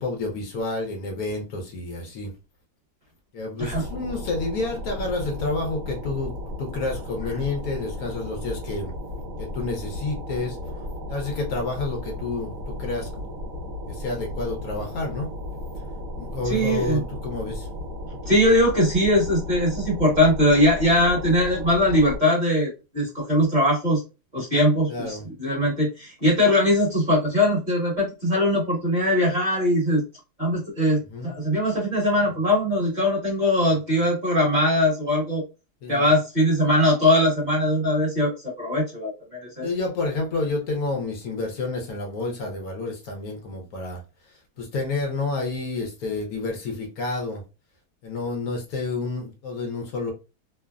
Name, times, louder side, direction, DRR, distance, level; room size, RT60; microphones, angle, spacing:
voice 1, 0.0-2.3 3.3-6.3 6.6-8.9 9.4-10.6 11.1-13.2 13.9-15.3 16.2-17.7 24.9-25.3 31.1-31.4 35.8-36.0 39.6-44.0 44.6-47.4 48.0-50.1, left 3 dB, 70° left, 1.2 m, -29 dB
sound 1, 3.6-22.2, left 1 dB, 60° right, 1.3 m, -35 dB
voice 2, 16.4-17.0 18.3-24.0 24.3-30.0 30.4-35.4 35.9-38.3 38.6-39.7, left 1 dB, 30° right, 1.4 m, -21 dB
3.2 x 2.0 x 2.4 m
omnidirectional pair, 1.7 m